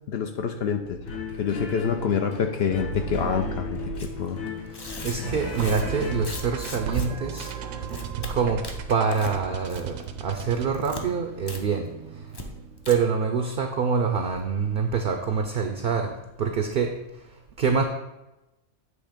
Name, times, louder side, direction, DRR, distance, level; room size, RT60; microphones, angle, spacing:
voice 1, 0.1-1.0 1.4-4.4, left 7 dB, 65° left, 6 dB, 0.7 m, -27 dB
sound 1, 1.0-6.8, left 2 dB, 80° left, 1.5 m, -34 dB
Tearing, 4.0-4.1 4.7-7.1 7.4-7.5 7.9-8.3 8.6-9.4 9.7-10.0 10.3-11.0 11.5-11.6 11.9-12.0 12.3-12.5 12.8-13.0, left 2 dB, 30° left, 0.4 m, -38 dB
voice 2, 5.0-11.9 12.9-17.0 17.6-17.8, right 5 dB, 60° right, 5 dB, 0.6 m, -26 dB
sound 2, 5.6-12.9, right 7 dB, 80° right, 1.0 m, -36 dB
7.9 x 3.2 x 5.0 m, 0.97 s
omnidirectional pair, 1.4 m